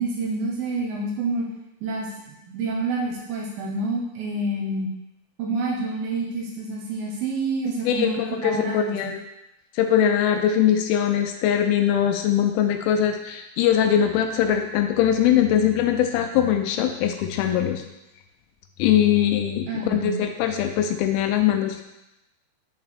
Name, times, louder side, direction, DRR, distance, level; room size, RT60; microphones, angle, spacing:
voice 1, 0.0-1.5 1.8-4.9 5.4-9.1 19.7-20.2, right 2 dB, 80° right, -1 dB, 2.4 m, -28 dB
voice 2, 7.9-9.2 9.8-17.8 18.8-21.8, left 10 dB, 80° left, 5 dB, 2.3 m, -21 dB
5.6 x 4.3 x 4.2 m, 0.93 s
omnidirectional pair, 4.6 m